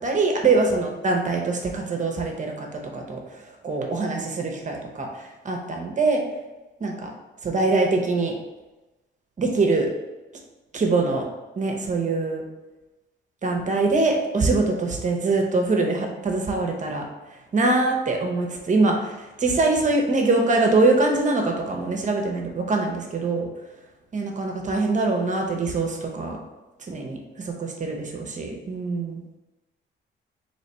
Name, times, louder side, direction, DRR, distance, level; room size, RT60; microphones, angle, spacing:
voice 1, 0.0-3.2 3.6-6.2 6.8-7.1 7.4-8.3 9.4-9.9 10.7-11.3 11.6-12.4 13.4-17.0 17.5-23.5 24.1-26.4 26.9-29.2, right 3 dB, 40° right, 2 dB, 0.8 m, -23 dB
3.2 x 3.1 x 4.2 m, 1.1 s
cardioid pair, 90°, 20 cm